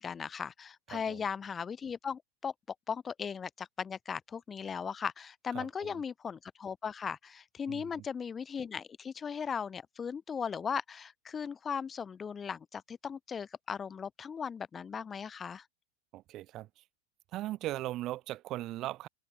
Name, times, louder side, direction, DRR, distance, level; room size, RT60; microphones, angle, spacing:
voice 1, 0.0-2.5 2.9-15.6, left 6 dB, 20° left, 2.6 m, -38 dB
voice 2, 0.9-1.2 5.5-6.0 7.7-8.0 16.1-16.8 17.3-19.1, right 15 dB, 35° right, 2.7 m, -39 dB
figure-of-eight pair, 90°, 0 cm